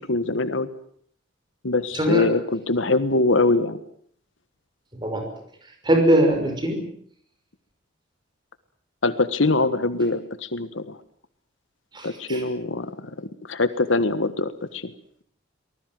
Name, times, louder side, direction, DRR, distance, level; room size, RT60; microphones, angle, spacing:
voice 1, 0.1-0.7 1.6-3.8 9.0-11.0 12.0-13.1 13.5-14.9, left 2 dB, 75° left, 12 dB, 1.5 m, -23 dB
voice 2, 1.9-2.3 5.0-5.3 5.8-6.9 11.9-12.4, right 1 dB, 25° right, 4 dB, 5.9 m, -21 dB
24.0 x 20.0 x 7.7 m, 0.62 s
head